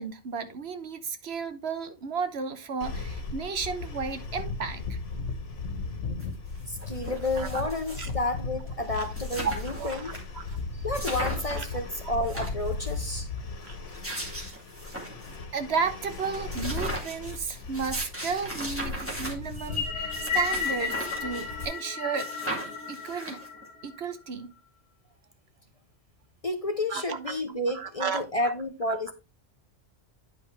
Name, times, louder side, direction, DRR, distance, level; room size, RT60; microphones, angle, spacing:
voice 1, 0.0-5.0 7.3-7.6 8.0-8.1 8.9-9.1 9.4-10.4 11.6-11.7 13.6-13.8 15.5-22.3 22.9-23.4 23.8-24.5 26.9-27.4 27.7-28.2, right 5 dB, 60° right, 1.1 m, -33 dB
sound 1, 2.8-21.7, left 3 dB, 70° left, 1.5 m, -37 dB
sound 2, 6.2-6.3 6.6-8.2 8.7-8.8 8.9-10.2 10.5-10.6 10.9-11.7 12.1-13.0 13.7-15.4 15.7-15.8 16.1-21.9 22.1-23.7, right 1 dB, 10° right, 2.2 m, -38 dB
voice 2, 6.7-10.1 10.8-13.3 26.4-29.1, left 1 dB, 35° left, 0.8 m, -31 dB
sound 3, 19.6-24.1, left 5 dB, 5° left, 2.9 m, -33 dB
9.6 x 5.4 x 3.3 m
omnidirectional pair, 1.3 m